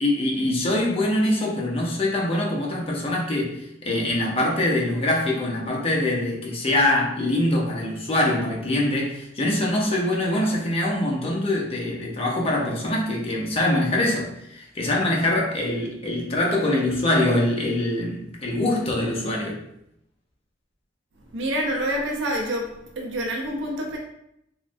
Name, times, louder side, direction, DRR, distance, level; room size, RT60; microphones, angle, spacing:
voice 1, 0.0-19.6, left 1 dB, 30° left, -2 dB, 0.6 m, -24 dB
voice 2, 21.3-24.0, equal, 70° right, 1 dB, 0.5 m, -27 dB
3.1 x 2.1 x 2.5 m, 0.77 s
head